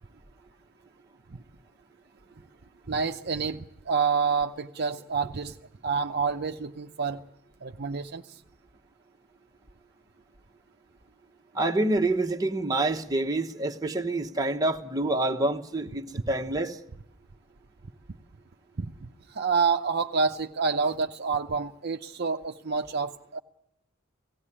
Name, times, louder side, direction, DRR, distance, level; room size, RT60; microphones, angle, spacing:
voice 1, 2.9-5.6 5.8-7.2 7.6-8.2 18.8-23.4, right 5 dB, 55° right, 0.7 m, -28 dB
voice 2, 11.5-16.8, right 2 dB, 20° right, 1.1 m, -27 dB
17.5 x 16.5 x 9.9 m
head